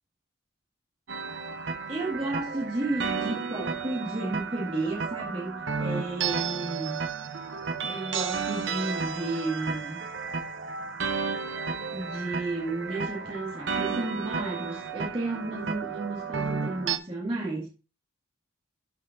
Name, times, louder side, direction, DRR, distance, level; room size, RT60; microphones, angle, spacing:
sound 1, 1.1-17.0, right 5 dB, 60° right, 0.8 m, -33 dB
voice 1, 1.9-7.0 7.8-10.0 11.9-17.7, right 2 dB, 25° right, 2.0 m, -32 dB
11.5 x 5.5 x 2.6 m
head